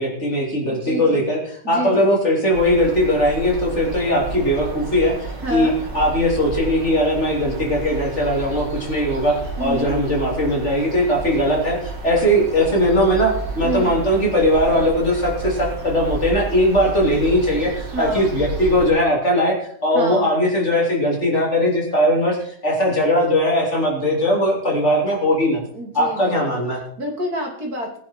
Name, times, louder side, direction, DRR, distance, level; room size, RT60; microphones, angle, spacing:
voice 1, 0.0-19.6 19.8-25.6 25.9-26.8, equal, 40° left, -2 dB, 3.7 m, -19 dB
voice 2, 0.5-1.2 1.6-2.3 5.4-5.8 9.6-10.0 13.6-14.0 17.9-18.3 19.9-20.3 25.7-26.3 27.0-28.0, right 1 dB, 60° right, 1 dB, 3.3 m, -28 dB
sound 1, 2.5-18.9, right 3 dB, 80° right, 3.7 m, -31 dB
19.5 x 10.0 x 4.5 m, 0.62 s
omnidirectional pair, 1.9 m